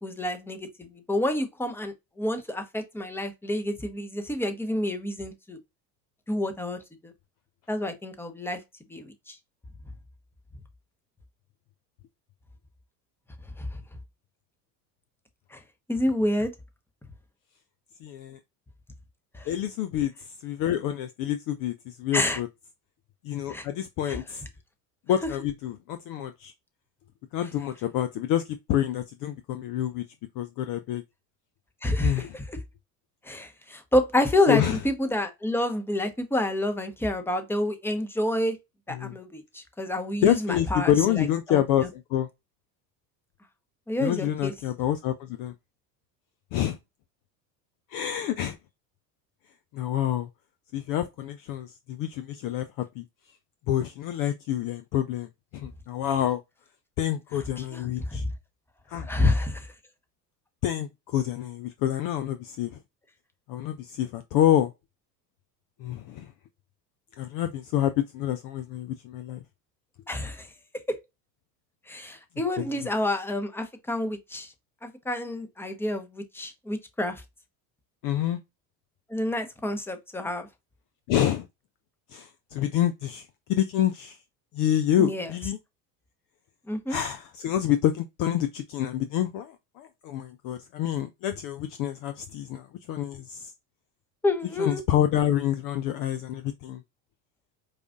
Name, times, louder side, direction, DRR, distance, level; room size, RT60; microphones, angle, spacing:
voice 1, 0.0-5.6 6.3-7.1 7.7-8.6 8.9-9.4 13.6-13.7 15.5-15.6 15.9-16.5 19.3-19.5 22.1-22.4 23.5-23.7 24.1-24.2 31.8-32.6 33.2-38.6 38.9-41.6 43.9-44.5 57.6-58.3 58.9-59.7 70.1-70.5 70.9-71.0 71.9-74.5 74.8-77.2 79.1-80.5 85.0-85.3 86.7-87.0 94.2-94.8, left 1 dB, 5° left, 0.8 m, -28 dB
voice 2, 18.0-18.4 19.5-22.5 23.2-24.4 25.1-26.5 27.3-30.0 30.4-31.0 32.0-32.4 34.5-34.8 38.9-39.2 40.2-42.3 44.0-45.5 46.5-46.8 47.9-48.6 49.7-50.3 50.7-53.0 53.7-56.4 57.0-58.2 58.9-59.1 60.6-62.8 63.5-64.7 65.8-66.3 67.2-69.4 72.6-72.7 78.0-78.4 81.1-81.5 82.1-84.2 84.5-85.6 86.9-93.5 94.6-96.8, left 11 dB, 45° left, 0.4 m, -27 dB
4.8 x 2.4 x 2.6 m
hypercardioid pair, 80°, 50 cm